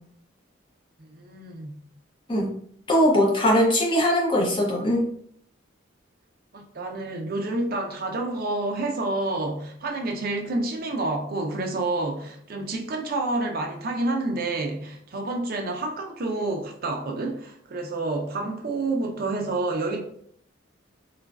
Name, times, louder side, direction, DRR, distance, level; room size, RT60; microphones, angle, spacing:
voice 1, 1.1-1.7 6.5-20.0, right 2 dB, 45° right, 2 dB, 0.5 m, -29 dB
voice 2, 2.9-5.0, equal, 25° left, -2 dB, 0.6 m, -20 dB
3.0 x 2.4 x 2.3 m, 0.64 s
head